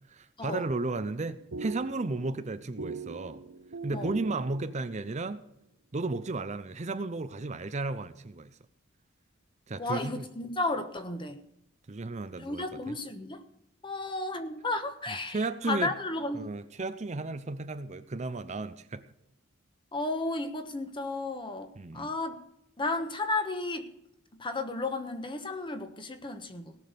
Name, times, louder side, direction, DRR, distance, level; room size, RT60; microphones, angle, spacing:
voice 1, 0.1-3.4 3.8-5.4 5.9-8.6 9.7-10.2 11.9-13.0 15.3-15.9 16.3-19.0 21.8-22.1, right 3 dB, 35° right, 0.6 m, -34 dB
sound 1, 1.0-5.3, right 4 dB, 75° right, 0.9 m, -42 dB
voice 2, 9.8-11.4 12.4-13.4 13.8-15.4 15.7-16.5 19.9-22.4 22.8-23.9 24.3-26.8, left 2 dB, 25° left, 1.2 m, -33 dB
18.0 x 6.2 x 6.8 m
head